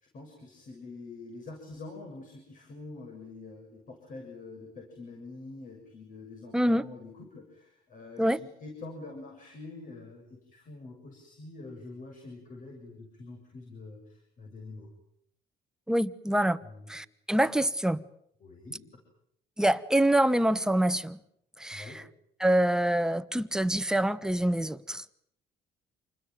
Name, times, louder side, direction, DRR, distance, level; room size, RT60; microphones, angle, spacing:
voice 1, 0.1-14.9 16.6-16.9 18.4-18.8 21.7-22.0, left 3 dB, 50° left, 7.1 m, -45 dB
voice 2, 6.5-6.8 8.2-8.4 15.9-16.6 16.9-18.0 19.6-21.2 21.6-22.0 22.4-25.0, right 1 dB, 5° right, 1.2 m, -26 dB
28.0 x 20.5 x 9.2 m
cardioid pair, 110°, 17 cm